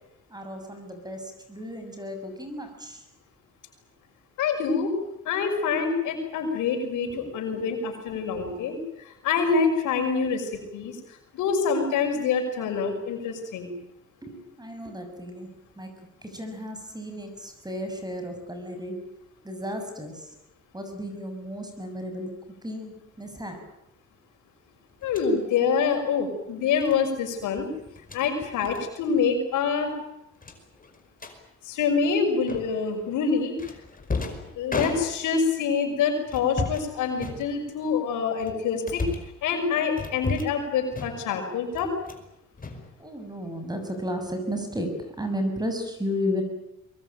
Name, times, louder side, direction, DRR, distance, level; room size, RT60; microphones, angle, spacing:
voice 1, 0.3-3.0 7.2-7.3 14.2-15.5 15.8-15.9 16.2-19.0 19.4-20.3 20.7-22.3 22.6-23.6 27.7-27.8 28.2-28.5 43.0-44.9 45.2-46.4, equal, 15° right, 6 dB, 6.8 m, -33 dB
voice 2, 4.4-4.9 5.2-8.8 9.0-11.0 11.3-13.7 25.0-27.7 28.1-29.9 31.6-33.5 34.6-39.0 39.4-41.9, left 5 dB, 85° left, 4 dB, 6.0 m, -26 dB
sound 1, 25.0-25.3 26.8-27.0 27.9-28.2 28.6-28.8 29.1-29.3 29.6-29.7 30.4-31.4 32.5-32.9 33.6-35.5 36.3-36.9 37.2-37.9 38.4-39.4 40.0-40.6 40.9-41.4 41.7-42.3 42.6-43.4, left 3 dB, 30° left, 5.2 m, -34 dB
23.5 x 22.5 x 9.1 m, 0.86 s
cardioid pair, 90°, 30 cm